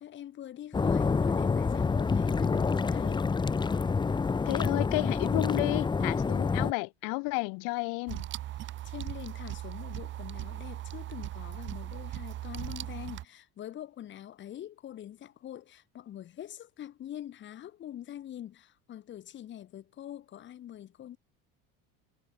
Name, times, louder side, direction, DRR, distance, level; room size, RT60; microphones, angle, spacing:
voice 1, 0.0-3.3 8.5-21.2, left 11 dB, 35° left, 5.3 m, -44 dB
sound 1, 0.7-6.7, left 4 dB, 15° left, 2.1 m, -27 dB
voice 2, 4.5-8.2, left 34 dB, 65° left, 4.5 m, -32 dB
sound 2, 8.1-13.2, right 14 dB, 35° right, 1.2 m, -39 dB
cardioid pair, 165°, 34 cm